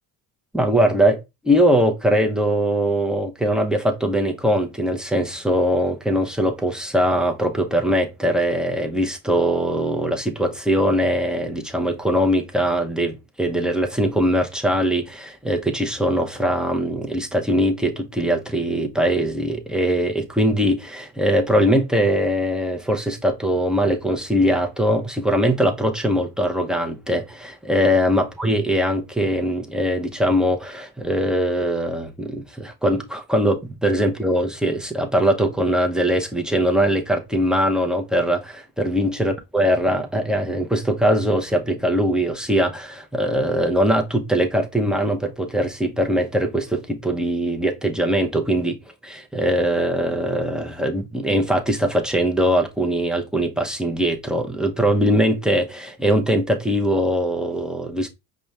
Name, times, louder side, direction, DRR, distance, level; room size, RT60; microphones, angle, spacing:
voice 1, 0.5-1.2 1.4-48.8 49.0-58.1, equal, ahead, 0.7 m, -21 dB
5.1 x 2.4 x 3.2 m
supercardioid pair, 80°, 49 cm